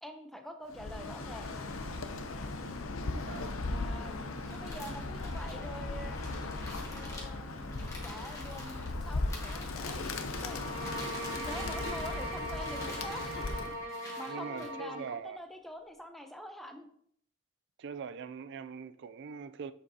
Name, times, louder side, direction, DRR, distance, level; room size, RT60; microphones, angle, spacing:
voice 1, 0.0-1.6 3.7-4.1 4.5-6.2 6.9-10.6 11.3-16.9, equal, ahead, 0.7 m, -46 dB
Bird, 0.7-13.8, left 2 dB, 75° left, 0.7 m, -38 dB
voice 2, 3.0-3.6 11.9-12.0 14.3-15.4 17.8-19.7, right 6 dB, 60° right, 0.4 m, -42 dB
sound 1, 4.4-8.9 9.3-10.5 10.8-12.2 12.5-13.5 13.9-14.7, left 2 dB, 15° left, 1.7 m, -48 dB
sound 2, 10.4-15.2, right 1 dB, 90° right, 2.6 m, -40 dB
7.8 x 6.8 x 2.8 m
head